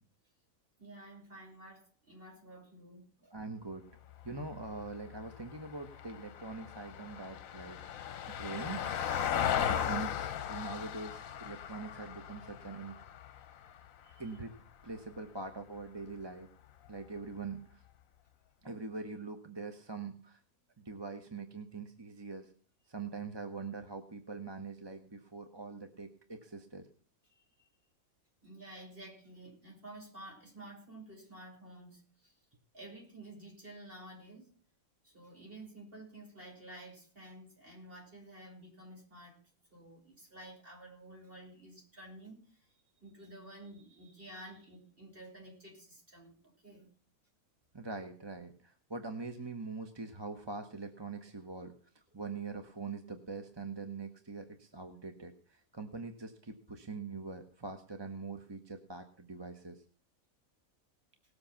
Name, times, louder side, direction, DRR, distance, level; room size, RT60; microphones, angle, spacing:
voice 1, 0.8-3.1 14.0-14.3 27.6-27.7 28.4-32.4 32.7-34.5 35.0-39.4 39.7-42.7 43.0-46.9, right 1 dB, 40° right, -1 dB, 5.9 m, -51 dB
voice 2, 3.2-3.8 4.2-7.8 8.3-8.8 9.3-13.0 14.2-14.5 14.8-16.5 16.9-17.8 18.6-20.4 20.8-22.5 22.9-26.9 47.7-51.7 52.1-59.8, right 4 dB, 20° right, 5 dB, 1.1 m, -43 dB
Vehicle, 4.1-14.6 16.9-17.0, left 9 dB, 70° left, 1.2 m, -37 dB
19.0 x 7.7 x 5.9 m, 0.43 s
omnidirectional pair, 1.5 m